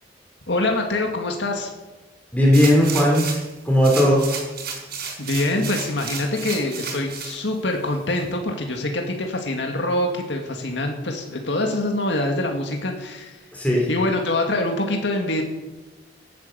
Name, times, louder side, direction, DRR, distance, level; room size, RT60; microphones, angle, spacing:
voice 1, 0.5-1.7 5.2-13.4 13.9-15.4, left 2 dB, 70° left, 2 dB, 2.1 m, -25 dB
voice 2, 2.3-3.3 3.6-4.3 13.5-13.9, equal, 10° left, -3 dB, 3.6 m, -17 dB
sound 1, 2.5-3.5 3.8-7.4 7.9-8.0, right 6 dB, 60° right, 4.5 m, -32 dB
16.5 x 9.7 x 6.7 m, 1.1 s
head